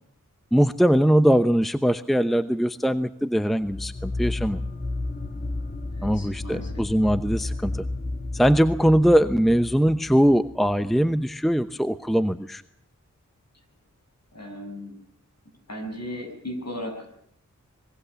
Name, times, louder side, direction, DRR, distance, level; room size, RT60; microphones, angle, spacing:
voice 1, 0.5-4.6 6.0-7.8 8.3-12.6, equal, ahead, 11 dB, 0.9 m, -21 dB
sound 1, 3.6-10.9, left 2 dB, 30° left, 1.7 m, -32 dB
voice 2, 5.9-6.8 7.4-7.8 14.3-15.0 15.7-17.1, equal, 55° left, 3 dB, 7.5 m, -37 dB
24.5 x 22.0 x 7.0 m, 0.69 s
wide cardioid pair, 60°, 31 cm